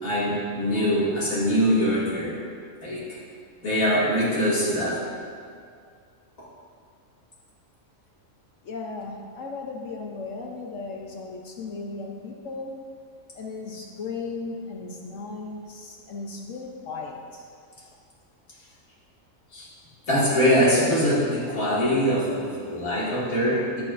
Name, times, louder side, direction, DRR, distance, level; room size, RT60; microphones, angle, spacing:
voice 1, 0.0-2.4 2.8-3.2 3.6-5.0 19.5-19.7 20.1-23.8, equal, 90° left, -8 dB, 2.8 m, -23 dB
voice 2, 8.6-12.8 13.3-17.4 18.5-18.8, left 3 dB, 70° left, 1 dB, 1.1 m, -36 dB
16.5 x 6.2 x 2.6 m, 2.2 s
omnidirectional pair, 1.4 m